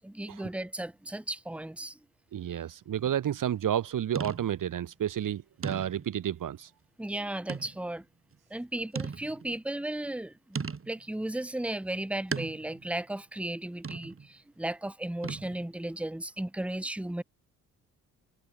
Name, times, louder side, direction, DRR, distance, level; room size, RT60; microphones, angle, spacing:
voice 1, 0.0-2.0 2.5-2.6 7.0-8.1 8.5-10.6 10.9-17.2, right 1 dB, 5° right, 1.3 m, -35 dB
voice 2, 2.3-6.7, right 10 dB, 50° right, 1.2 m, -31 dB
sound 1, 3.0-3.3 4.2-4.7 5.2-5.3 5.6-6.2 7.5-7.8 8.3-8.4 9.0-9.6 10.6-11.0 12.3-12.9 13.8-14.3 15.2-15.7, right 5 dB, 35° right, 2.5 m, -37 dB
hypercardioid pair, 45°, 39 cm